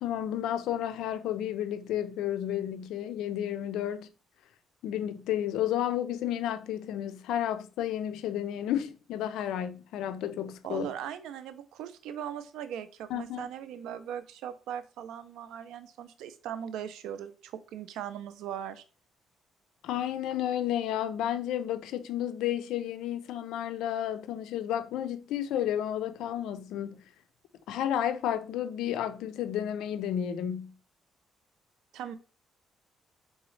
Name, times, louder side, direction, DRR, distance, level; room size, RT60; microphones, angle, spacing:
voice 1, 0.0-4.1 4.8-10.9 13.1-13.5 19.8-27.0 27.7-30.7, left 11 dB, 90° left, 0.4 m, -32 dB
voice 2, 10.6-18.8 31.9-32.1, right 9 dB, 85° right, 0.5 m, -39 dB
3.9 x 3.5 x 3.1 m
cardioid pair, 90°, 0 cm